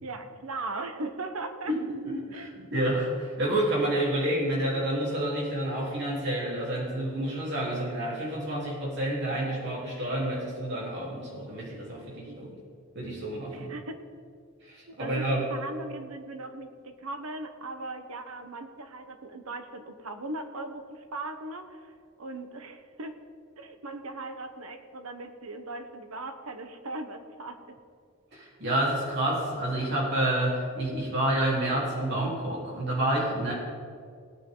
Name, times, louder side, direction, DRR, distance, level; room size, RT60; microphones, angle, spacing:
voice 1, 0.0-1.7 2.3-2.5 4.2-4.3 12.2-12.4 13.5-14.0 14.9-21.9 22.2-23.2 23.6-27.8, right 2 dB, 85° right, 7 dB, 1.1 m, -39 dB
voice 2, 1.7-12.6 12.9-13.7 14.6-15.4 28.3-33.5, right 1 dB, 55° right, -5 dB, 3.7 m, -29 dB
18.5 x 9.4 x 3.9 m, 2.2 s
head